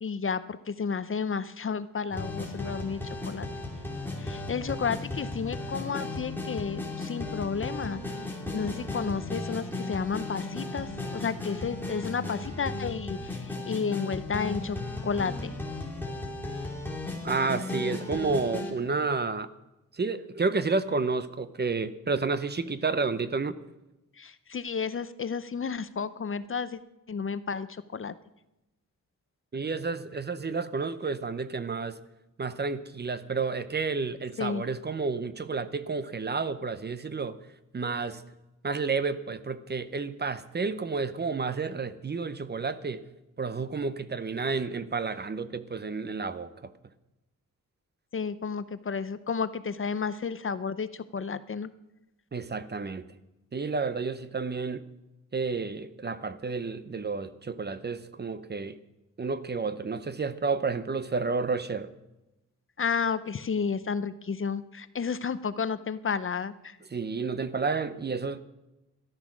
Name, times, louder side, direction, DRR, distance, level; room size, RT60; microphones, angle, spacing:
voice 1, 0.0-3.5 4.2-8.0 8.5-13.4 13.7-14.8 15.0-15.5 24.2-26.8 27.1-27.7 27.9-28.1 34.4-34.6 48.1-51.7 62.8-66.8, left 6 dB, 40° left, 14 dB, 0.6 m, -32 dB
sound 1, 2.1-18.7, left 2 dB, 5° left, 2.8 m, -35 dB
voice 2, 17.2-19.5 19.9-23.6 29.5-32.0 32.4-37.4 37.7-38.2 38.6-43.0 43.4-46.7 52.3-53.0 53.5-54.8 55.3-58.8 59.2-61.9 66.9-68.4, right 4 dB, 30° right, 13 dB, 0.6 m, -30 dB
13.0 x 12.0 x 6.1 m, 0.95 s
wide cardioid pair, 150°, 32 cm